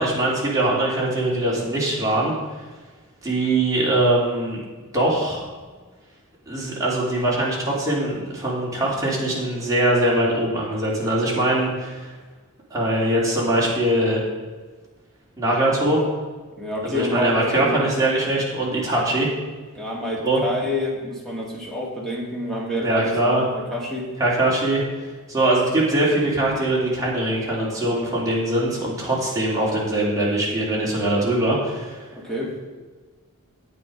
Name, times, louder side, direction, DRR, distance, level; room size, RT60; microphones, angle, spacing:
voice 1, 0.0-2.3 3.2-4.6 4.9-5.5 6.5-12.1 12.7-14.2 15.4-16.0 16.8-19.3 20.2-20.4 22.8-23.4 24.2-24.8 25.3-32.0, right 1 dB, 15° right, -6 dB, 3.2 m, -22 dB
voice 2, 16.6-17.9 19.8-24.1 32.1-32.5, left 1 dB, ahead, -4 dB, 2.3 m, -28 dB
9.6 x 8.5 x 5.3 m, 1.4 s
head